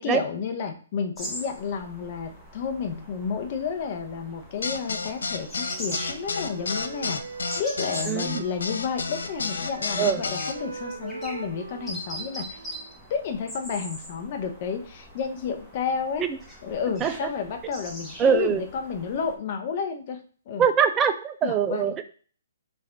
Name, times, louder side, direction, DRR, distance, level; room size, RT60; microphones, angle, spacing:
voice 1, 0.0-7.2 7.6-12.6 13.1-16.3 16.6-20.2 20.5-20.7 21.4-21.9, left 6 dB, 45° left, 0.7 m, -31 dB
sound 1, 1.2-19.4, equal, 5° left, 1.0 m, -42 dB
sound 2, 4.6-10.5, left 4 dB, 75° left, 0.4 m, -30 dB
Wind instrument woodwind instrument, 5.2-8.9 9.1-13.1, right 3 dB, 75° right, 0.7 m, -41 dB
voice 2, 8.1-8.4 10.0-10.2 16.2-16.3 17.0-17.1 18.2-18.6 20.6-22.0, right 7 dB, 20° right, 0.4 m, -22 dB
3.5 x 2.5 x 3.4 m
hypercardioid pair, 135°, 0 cm